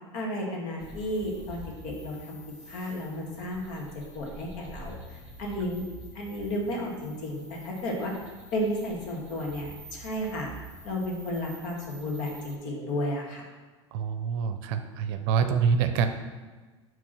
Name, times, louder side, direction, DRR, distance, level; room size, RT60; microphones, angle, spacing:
voice 1, 0.1-2.4 2.7-3.9 4.1-5.8 6.1-8.1 8.5-10.5 10.8-13.5, left 1 dB, 55° left, -1 dB, 1.9 m, -33 dB
sound 1, 0.8-12.6, right 2 dB, 5° right, 2.2 m, -47 dB
voice 2, 13.9-16.1, right 6 dB, 60° right, 9 dB, 0.6 m, -26 dB
6.1 x 3.6 x 6.0 m, 1.3 s
hypercardioid pair, 95°, 15 cm